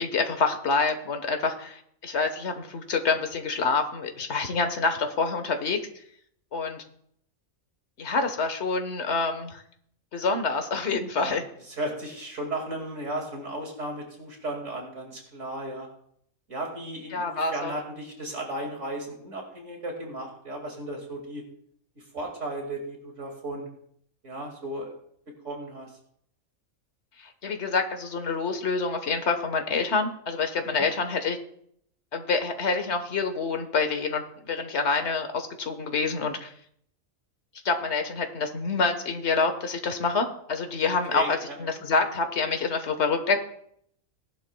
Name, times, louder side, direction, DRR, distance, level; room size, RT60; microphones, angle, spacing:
voice 1, 0.0-5.8 6.5-6.8 8.0-9.6 10.1-11.4 17.1-17.7 27.2-31.4 32.1-36.5 37.6-43.4, left 4 dB, 55° left, 6 dB, 1.6 m, -27 dB
voice 2, 11.8-15.9 16.5-21.4 22.1-23.7 24.2-24.9 25.4-25.9 30.7-30.8 41.1-41.5, right 1 dB, 65° right, 1 dB, 2.6 m, -35 dB
18.5 x 11.0 x 2.3 m, 0.67 s
omnidirectional pair, 1.4 m